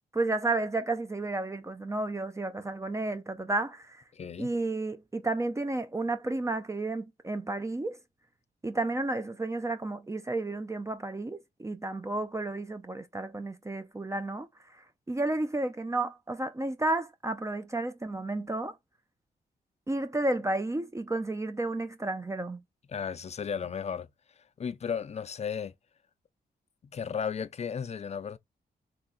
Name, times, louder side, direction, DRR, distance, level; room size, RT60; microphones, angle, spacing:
voice 1, 0.1-4.0 4.4-8.0 8.6-14.5 15.1-18.7 19.9-22.6, right 2 dB, 20° right, 0.5 m, -32 dB
voice 2, 4.1-4.5 22.9-24.1 24.6-25.7 26.9-28.4, left 7 dB, 40° left, 0.5 m, -34 dB
3.7 x 2.3 x 4.1 m
cardioid pair, 75°, 17 cm